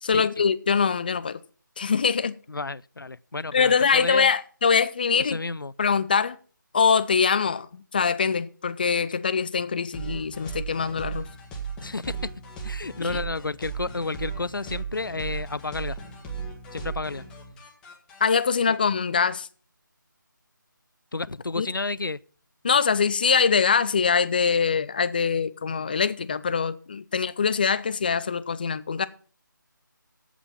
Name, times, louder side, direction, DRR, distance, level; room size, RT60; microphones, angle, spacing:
voice 1, 0.0-1.4 1.8-2.4 3.5-5.4 5.8-6.4 6.7-11.3 13.1-13.2 18.2-19.5 21.6-21.7 22.6-29.1, left 6 dB, 25° left, 0.4 m, -23 dB
voice 2, 2.5-4.3 5.2-5.7 11.8-12.3 12.6-16.0 16.7-17.2 21.1-22.2, left 3 dB, 90° left, 0.5 m, -31 dB
sound 1, 9.9-18.3, right 5 dB, 5° left, 1.4 m, -36 dB
8.0 x 8.0 x 7.0 m
figure-of-eight pair, 160°, 11 cm